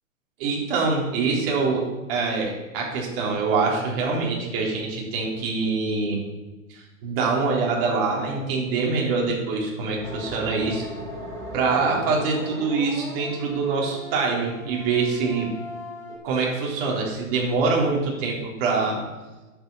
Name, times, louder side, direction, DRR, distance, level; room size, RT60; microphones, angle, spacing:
voice 1, 0.4-6.2 6.7-10.9 11.5-15.5 16.2-19.0, right 4 dB, 45° right, -2 dB, 3.8 m, -24 dB
sound 1, 10.0-16.2, left 1 dB, 10° left, 2.9 m, -38 dB
10.0 x 8.3 x 5.6 m, 1.1 s
hypercardioid pair, 130°, 41 cm